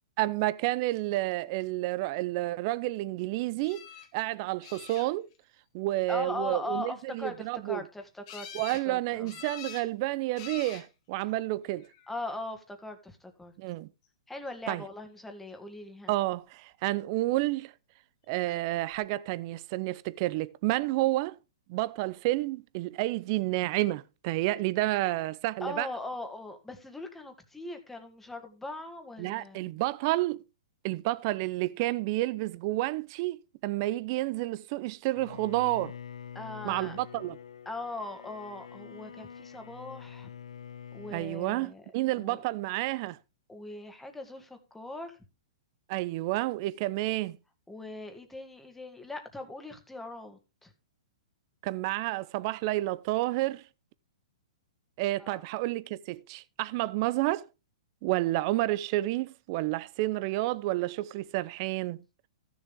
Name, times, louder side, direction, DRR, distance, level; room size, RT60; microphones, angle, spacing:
voice 1, 0.2-3.8 4.1-5.3 5.7-7.8 8.5-11.9 13.6-13.9 14.7-14.8 16.1-17.7 18.3-21.4 21.7-25.9 29.2-30.4 30.8-35.9 36.6-37.4 41.1-43.2 45.9-47.4 51.6-53.6 55.0-57.4 58.0-62.0, right 18 dB, 45° right, 0.6 m, -30 dB
sound 1, 3.6-4.1 4.6-5.4 8.3-8.9 9.3-9.9 10.4-10.9 11.8-12.3 18.5-18.6 18.9-19.0, left 9 dB, 45° left, 2.2 m, -45 dB
voice 2, 6.1-8.5 8.9-9.3 12.1-13.5 14.3-16.1 25.6-29.7 36.3-37.0 37.7-40.3 40.9-41.9 42.1-42.4 43.5-45.2 47.7-50.7 55.2-55.4, left 2 dB, 5° left, 1.9 m, -40 dB
Bowed string instrument, 35.2-41.4, left 8 dB, 85° left, 0.7 m, -46 dB
14.5 x 7.1 x 3.6 m
hypercardioid pair, 130°, 3 cm